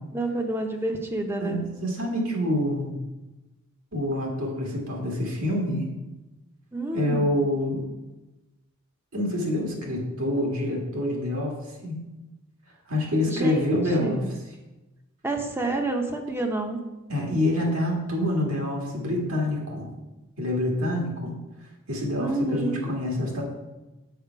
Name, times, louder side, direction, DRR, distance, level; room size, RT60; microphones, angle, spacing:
voice 1, 0.1-1.6 6.7-7.3 13.3-14.3 15.2-16.8 22.2-22.9, right 2 dB, 10° right, 4 dB, 0.7 m, -29 dB
voice 2, 1.4-3.0 3.9-5.9 6.9-7.8 9.1-11.5 11.8-12.0 12.9-14.2 17.1-19.9 20.4-21.3 21.9-23.4, left 1 dB, 75° right, -1 dB, 1.9 m, -26 dB
6.7 x 5.7 x 4.6 m, 1.1 s
head